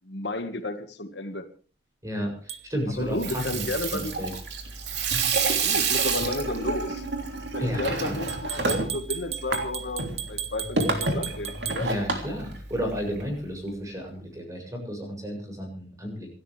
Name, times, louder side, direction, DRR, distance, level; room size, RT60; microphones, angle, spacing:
voice 1, 0.0-1.4 3.0-4.1 5.6-7.1 7.5-11.9, left 2 dB, 65° left, 7 dB, 1.8 m, -32 dB
voice 2, 2.0-3.6 3.9-4.3 7.6-8.2 11.8-16.3, equal, 20° right, 3 dB, 7.4 m, -32 dB
sound 1, 2.5-2.6 5.3-5.5 8.3-11.8, right 10 dB, 35° right, 1.6 m, -35 dB
Water tap faucet / Sink (filling or washing), 3.0-13.2, right 4 dB, 65° right, 3.2 m, -29 dB
27.5 x 13.0 x 3.4 m, 0.38 s
head